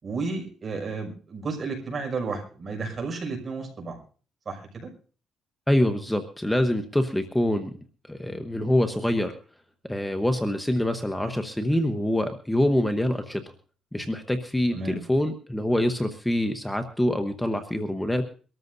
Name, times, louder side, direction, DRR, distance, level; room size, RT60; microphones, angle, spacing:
voice 1, 0.0-4.0 4.5-4.9 14.7-15.0, right 4 dB, 40° right, 2 dB, 6.0 m, -32 dB
voice 2, 5.7-7.7 8.1-9.3 9.8-13.4 13.9-18.2, left 1 dB, 5° left, 7 dB, 1.1 m, -25 dB
23.5 x 13.5 x 2.7 m, 0.40 s
cardioid pair, 90°, 0 cm